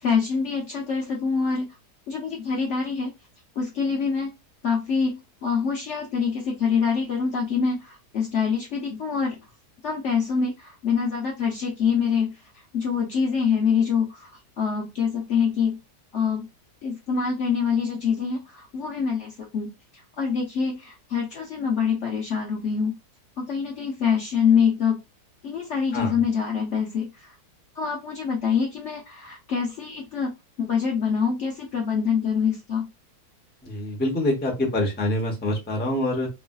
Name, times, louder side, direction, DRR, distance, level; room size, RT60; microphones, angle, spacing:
voice 1, 0.0-1.7 2.1-3.1 3.6-4.3 4.6-9.4 9.8-12.4 12.7-15.8 16.1-16.5 16.8-23.0 23.4-25.0 25.4-27.4 27.7-30.3 30.6-32.9, left 6 dB, 60° left, 0 dB, 0.8 m, -25 dB
voice 2, 25.9-26.2 33.6-36.3, left 1 dB, 10° left, 1 dB, 0.6 m, -25 dB
3.1 x 2.5 x 2.2 m, 0.23 s
omnidirectional pair, 1.7 m